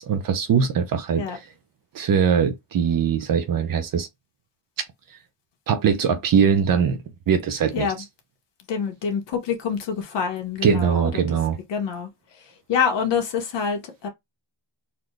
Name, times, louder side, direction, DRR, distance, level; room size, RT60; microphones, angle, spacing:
voice 1, 0.0-1.4 1.9-4.1 5.7-7.0 7.3-7.9 10.6-11.6, right 7 dB, 45° right, 0.8 m, -21 dB
voice 2, 8.7-11.2 11.7-12.1 12.7-14.1, left 6 dB, 55° left, 1.4 m, -26 dB
4.1 x 2.9 x 3.2 m
cardioid pair, 150°, 50 cm